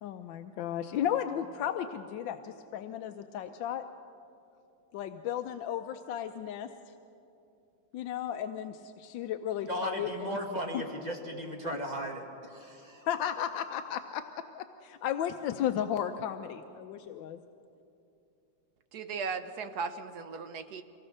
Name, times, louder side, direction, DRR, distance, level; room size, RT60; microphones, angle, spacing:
voice 1, 0.0-3.8 4.9-6.7 7.9-10.4 13.0-14.2 14.5-17.4, left 10 dB, 70° left, 7 dB, 1.2 m, -34 dB
voice 2, 9.7-13.1, equal, 20° right, 1 dB, 1.8 m, -36 dB
voice 3, 18.9-20.8, right 5 dB, 60° right, 9 dB, 1.1 m, -37 dB
24.0 x 17.5 x 6.5 m, 2.7 s
omnidirectional pair, 2.4 m